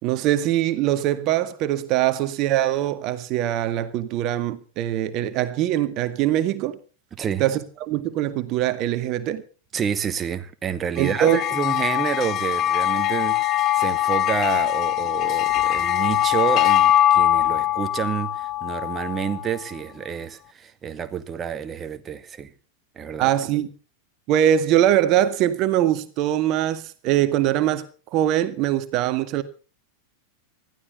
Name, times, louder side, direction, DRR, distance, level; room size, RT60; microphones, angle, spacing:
voice 1, 0.0-6.8 7.4-9.4 11.0-11.4 23.2-23.7 24.3-27.9 28.1-29.4, right 12 dB, 40° right, 1.8 m, -22 dB
voice 2, 7.1-7.5 9.7-22.5 23.0-23.3, right 7 dB, 20° right, 2.0 m, -29 dB
sound 1, 11.0-19.6, left 13 dB, 35° left, 0.8 m, -22 dB
20.5 x 15.0 x 4.2 m
figure-of-eight pair, 90°, 0 cm